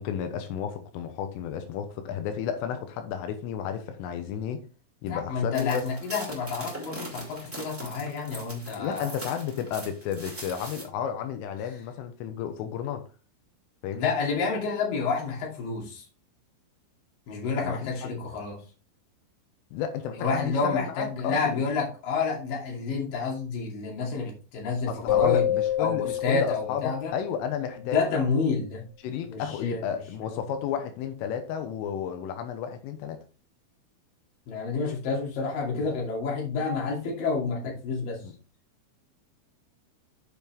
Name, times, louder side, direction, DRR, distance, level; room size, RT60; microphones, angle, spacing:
voice 1, 0.0-4.7 5.0-5.9 8.8-13.0 13.8-14.1 17.6-17.9 19.7-21.6 24.9-28.0 29.0-33.2 38.2-38.3, left 8 dB, 90° left, 3.5 m, -32 dB
voice 2, 5.1-9.1 13.9-16.0 17.3-18.6 20.2-25.4 25.8-27.1 27.9-28.8 29.3-29.8 30.2-30.4 34.5-38.2, left 4 dB, 50° left, 3.8 m, -29 dB
sound 1, 5.5-10.8, right 1 dB, 5° right, 2.0 m, -41 dB
sound 2, 25.1-27.7, left 12 dB, 70° left, 3.8 m, -27 dB
8.1 x 7.1 x 3.3 m
omnidirectional pair, 5.6 m